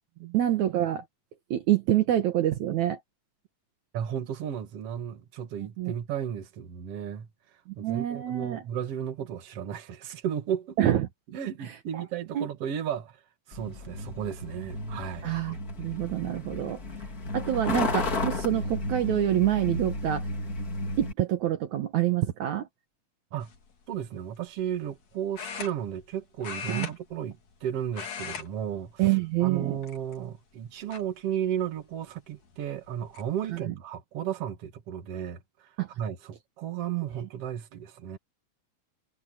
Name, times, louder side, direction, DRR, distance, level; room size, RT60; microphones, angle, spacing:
voice 1, 0.3-1.1 1.5-3.0 5.8-5.9 7.7-8.6 10.8-11.1 11.6-12.0 12.3-12.4 15.2-16.8 17.3-20.3 21.0-22.7 26.7-27.0 29.0-29.8 33.5-33.7 35.8-35.9, right 12 dB, 70° right, 2.5 m, -26 dB
voice 2, 3.9-7.3 7.8-10.8 11.3-13.2 13.5-15.3 23.3-23.5 23.9-29.0 29.4-35.7 36.0-38.2, right 9 dB, 55° right, 2.6 m, -34 dB
Truck, 13.5-21.1, left 2 dB, 30° left, 2.3 m, -33 dB
sound 1, 23.4-23.7 25.3-26.1 26.4-27.6 27.9-28.5 28.8-29.0 29.8-30.3 30.9-31.0 32.5-32.6 32.9-33.3, left 6 dB, 60° left, 4.1 m, -38 dB
omnidirectional pair, 3.6 m